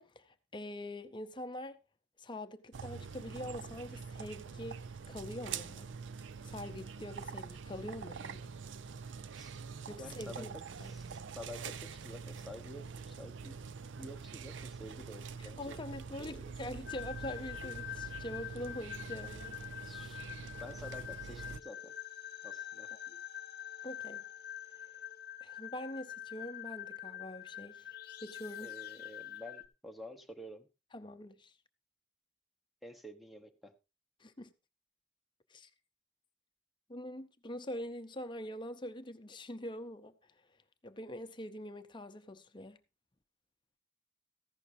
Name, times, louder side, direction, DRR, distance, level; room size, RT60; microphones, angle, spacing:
voice 1, 0.0-1.8 2.2-5.9 6.4-8.5 9.9-10.5 10.8-10.9 15.4-19.6 23.1-23.2 23.8-24.2 25.4-27.9 28.2-28.7 30.9-31.5 34.2-34.5 35.5-35.7 36.9-40.1 40.8-42.8, left 1 dB, 25° left, 0.7 m, -44 dB
sound 1, 2.7-21.6, right 5 dB, 70° right, 0.5 m, -45 dB
voice 2, 9.3-9.6 10.0-10.5 10.8-13.6 14.0-15.8 16.2-16.5 19.8-20.2 20.6-21.9 22.4-22.9 28.6-30.7 32.8-33.7, left 1 dB, ahead, 1.0 m, -50 dB
sound 2, 16.9-29.7, left 11 dB, 55° left, 0.9 m, -45 dB
14.5 x 11.0 x 2.7 m
head